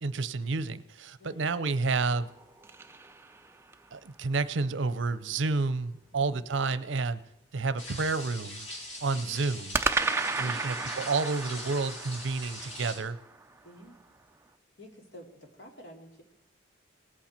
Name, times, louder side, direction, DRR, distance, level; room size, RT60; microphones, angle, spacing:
voice 1, 0.0-2.3 3.9-7.2 7.5-8.7 9.0-9.8 10.4-13.2, right 3 dB, 75° right, 14 dB, 0.6 m, -30 dB
sound 1, 2.0-3.9 9.7-14.0, right 3 dB, 10° right, 0.4 m, -34 dB
voice 2, 6.1-6.4 9.1-9.4 10.4-10.9 13.6-14.0 14.8-16.2, equal, 60° left, 1 dB, 2.5 m, -51 dB
sound 2, 7.8-13.0, left 1 dB, 75° left, 3.0 m, -42 dB
19.0 x 8.7 x 4.4 m, 0.89 s
head